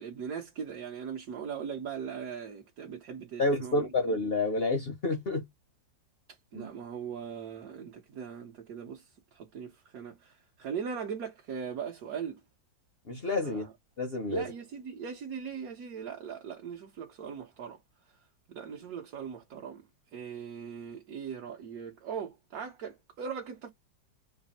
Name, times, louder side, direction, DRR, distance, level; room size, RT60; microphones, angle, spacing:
voice 1, 0.0-3.9 6.5-9.0 9.3-12.4 13.4-13.7 14.3-17.8 18.5-19.8 20.1-23.7, right 7 dB, 60° right, 1.1 m, -39 dB
voice 2, 3.4-5.4 6.5-6.7 13.1-13.7 14.0-14.4, left 2 dB, 50° left, 0.7 m, -29 dB
3.3 x 2.5 x 4.0 m
omnidirectional pair, 2.0 m